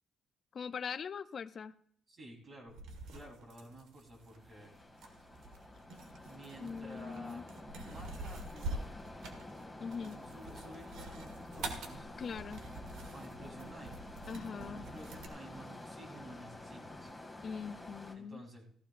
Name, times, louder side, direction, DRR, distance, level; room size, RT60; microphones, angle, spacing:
voice 1, 0.5-1.7 6.6-7.4 9.8-10.2 12.2-12.6 14.3-14.8 17.4-18.4, left 6 dB, 50° left, 13 dB, 0.5 m, -41 dB
voice 2, 2.1-2.7 3.1-4.8 5.0-5.2 6.2-7.6 7.8-8.9 10.0-12.0 13.1-14.0 14.3-17.1 18.1-18.7, right 1 dB, 45° right, -1 dB, 3.7 m, -52 dB
sound 1, 2.7-15.3, right 2 dB, 85° right, 1.5 m, -47 dB
sound 2, 4.2-18.1, left 2 dB, 5° left, 2.2 m, -49 dB
15.5 x 14.5 x 2.5 m, 0.62 s
cardioid pair, 90°, 0 cm